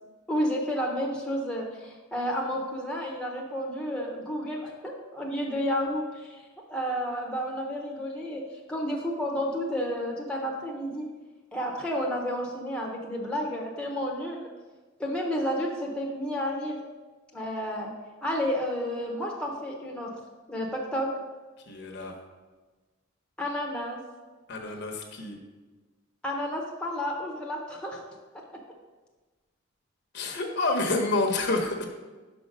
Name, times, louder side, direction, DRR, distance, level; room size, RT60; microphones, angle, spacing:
voice 1, 0.3-6.4 6.7-8.4 8.7-11.1 11.5-14.5 15.0-16.8 17.3-17.9 18.2-20.1 20.5-21.1 23.4-24.0 26.2-28.0, equal, 5° left, -2 dB, 0.8 m, -31 dB
voice 2, 21.7-22.1 24.5-25.4 30.1-31.9, left 2 dB, 55° left, 3 dB, 0.9 m, -28 dB
5.6 x 5.2 x 5.1 m, 1.3 s
head